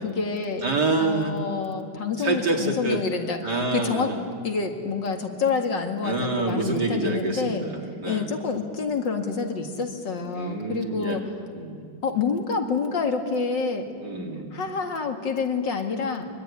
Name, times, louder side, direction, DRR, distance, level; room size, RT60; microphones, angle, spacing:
voice 1, 0.0-0.7 1.0-4.1 4.4-7.6 8.1-11.2 12.0-13.9 14.5-16.3, left 5 dB, 65° left, 4 dB, 2.8 m, -28 dB
voice 2, 0.6-1.3 2.2-3.0 3.4-4.2 6.0-8.3 10.3-11.2 11.5-11.9 14.0-14.5, right 2 dB, 55° right, 1 dB, 3.1 m, -27 dB
24.0 x 24.0 x 9.9 m, 2.3 s
omnidirectional pair, 2.1 m